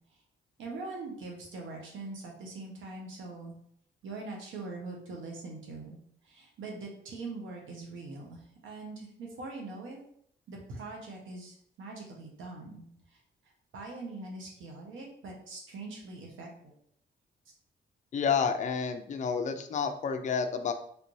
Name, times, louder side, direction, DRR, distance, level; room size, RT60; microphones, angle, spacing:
voice 1, 0.6-3.5 4.0-6.0 6.3-10.0 10.5-12.9 13.7-16.7, right 3 dB, 85° right, 0 dB, 1.0 m, -42 dB
voice 2, 18.1-20.7, left 6 dB, 40° left, 7 dB, 0.4 m, -30 dB
3.3 x 2.6 x 3.0 m, 0.64 s
cardioid pair, 85°, 20 cm